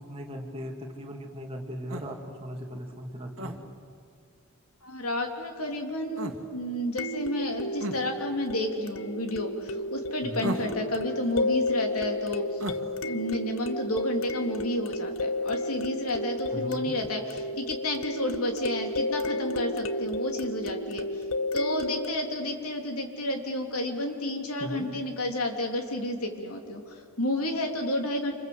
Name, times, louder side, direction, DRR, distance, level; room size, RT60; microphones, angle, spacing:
voice 1, 0.1-3.6 10.2-10.5 16.5-17.0 24.6-24.9, equal, 25° right, 1 dB, 2.6 m, -38 dB
sound 1, 1.9-2.1 3.4-3.6 6.2-6.4 7.8-8.0 10.4-10.8 12.6-12.8, right 1 dB, 60° right, 1.9 m, -33 dB
sound 2, 2.3-2.4 7.0-22.1, left 1 dB, 65° left, 0.9 m, -32 dB
voice 2, 4.8-12.6 13.0-21.2 21.5-28.3, left 1 dB, 85° left, 3 dB, 3.2 m, -31 dB
27.5 x 27.0 x 8.0 m, 2.2 s
head